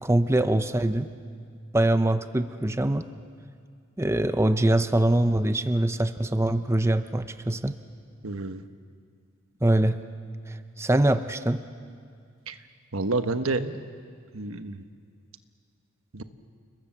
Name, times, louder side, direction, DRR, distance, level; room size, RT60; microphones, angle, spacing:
voice 1, 0.0-1.1 1.7-3.1 4.0-7.8 9.6-10.0 10.5-11.6, right 1 dB, 15° right, 10 dB, 0.6 m, -23 dB
voice 2, 8.2-8.6 12.5-12.6 12.9-13.8 14.3-14.8 16.1-16.2, right 3 dB, 90° right, 9 dB, 1.2 m, -29 dB
29.0 x 21.5 x 7.3 m, 2.3 s
head